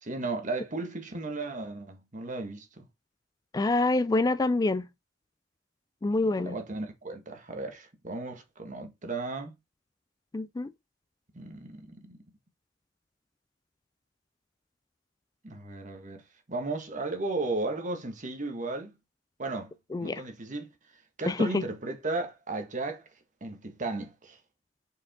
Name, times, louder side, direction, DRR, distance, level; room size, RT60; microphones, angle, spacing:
voice 1, 0.0-2.8 6.2-9.5 11.3-12.2 15.4-16.2 16.5-18.9 19.4-19.7 20.0-20.7 21.2-23.1 23.4-24.4, right 2 dB, 45° right, 1.5 m, -35 dB
voice 2, 3.5-4.9 6.0-6.6 10.3-10.7 19.9-20.2 21.3-21.6, left 2 dB, 20° left, 0.3 m, -26 dB
6.0 x 5.0 x 3.6 m
head